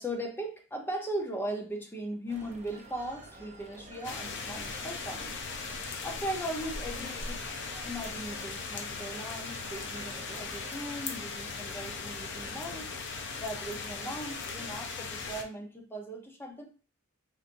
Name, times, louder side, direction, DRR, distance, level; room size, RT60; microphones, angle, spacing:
voice 1, 0.0-5.4 6.0-7.4 7.8-12.9 13.4-16.6, right 1 dB, 10° left, 1 dB, 0.7 m, -38 dB
Telephone, 2.3-14.7, right 2 dB, 30° right, 0.6 m, -49 dB
sound 1, 4.0-15.4, left 5 dB, 55° left, 0.5 m, -39 dB
3.9 x 3.1 x 2.5 m, 0.38 s
head